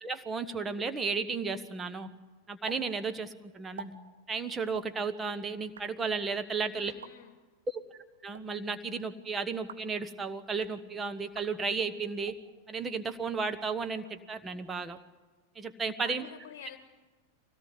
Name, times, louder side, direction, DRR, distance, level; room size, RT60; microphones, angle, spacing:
voice 1, 0.0-2.1 2.5-3.9 4.3-6.9 7.7-7.8 8.2-12.3 12.7-15.0 15.5-16.3, right 4 dB, 15° right, 9 dB, 1.4 m, -34 dB
sound 1, 2.7-2.8 3.1-3.2 3.6-3.9 4.7-4.9 5.6-5.9 6.8-7.1 8.1-8.4 9.5-9.9 10.4-10.8 11.3-11.5 12.2-12.4 13.1-13.8, right 7 dB, 65° right, 1.5 m, -48 dB
voice 2, 6.7-7.3 16.0-16.8, left 9 dB, 55° left, 5 dB, 1.3 m, -48 dB
24.0 x 18.0 x 9.6 m, 1.3 s
figure-of-eight pair, 90°, 0 cm